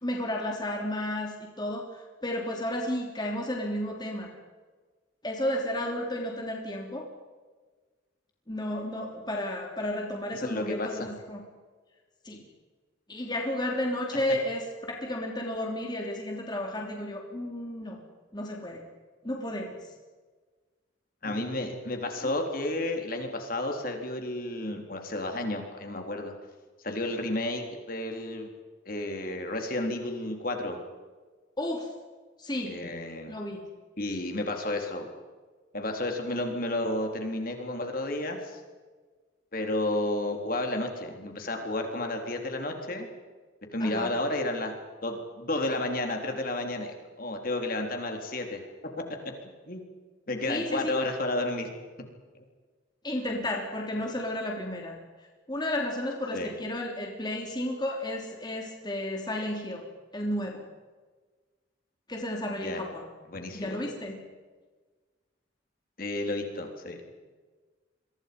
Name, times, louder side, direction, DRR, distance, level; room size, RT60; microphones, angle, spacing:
voice 1, 0.0-4.3 5.2-7.1 8.5-11.4 12.2-12.4 13.1-18.0 18.3-18.8 19.2-19.9 21.2-21.7 22.2-22.3 31.6-31.9 32.4-32.8 33.3-33.6 43.8-44.1 50.5-50.9 53.0-55.0 55.5-59.8 60.1-60.6 62.1-63.1 63.5-64.2, left 1 dB, 20° left, 0 dB, 3.3 m, -33 dB
voice 2, 10.4-11.1 21.2-26.3 26.8-28.5 28.9-30.8 32.7-33.4 34.0-35.1 35.7-38.4 39.5-43.1 43.7-44.7 45.0-48.6 49.7-49.8 50.3-51.7 56.3-56.5 62.6-62.8 63.3-63.8 66.0-67.0, left 1 dB, 45° left, 3 dB, 3.7 m, -31 dB
29.5 x 23.5 x 5.4 m, 1.4 s
head